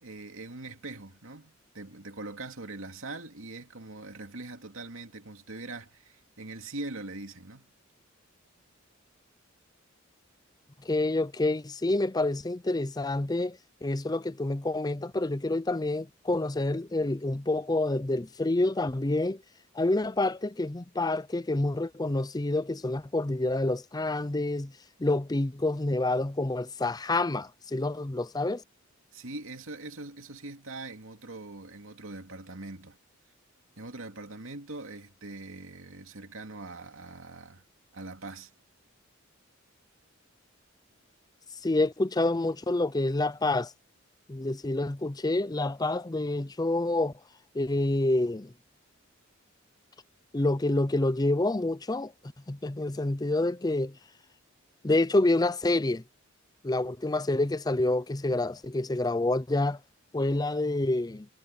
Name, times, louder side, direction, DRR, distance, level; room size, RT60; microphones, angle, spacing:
voice 1, 0.0-7.7 29.1-33.0 33.8-37.6 37.9-38.5, right 2 dB, 80° right, 2.5 m, -42 dB
voice 2, 10.8-19.4 19.7-24.7 25.0-28.6 41.6-43.7 44.3-47.1 47.5-48.5 50.3-52.1 52.5-54.0 54.8-56.0 56.6-59.8 60.1-61.3, left 2 dB, 20° left, 0.5 m, -28 dB
head